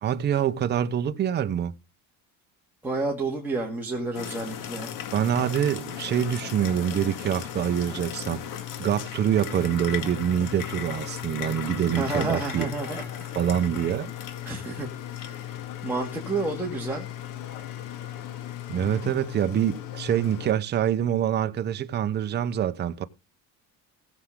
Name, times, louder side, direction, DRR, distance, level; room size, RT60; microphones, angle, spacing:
voice 1, 0.0-1.7 5.1-8.4 8.8-12.7 13.4-14.1 18.7-23.0, right 9 dB, 25° right, 0.8 m, -25 dB
voice 2, 2.8-4.9 12.0-13.4 14.4-14.9 15.1-15.5 15.8-17.1, right 3 dB, 5° right, 2.3 m, -30 dB
sound 1, 4.1-20.5, left 10 dB, 60° left, 2.0 m, -36 dB
17.5 x 7.3 x 3.7 m
cardioid pair, 170°, 37 cm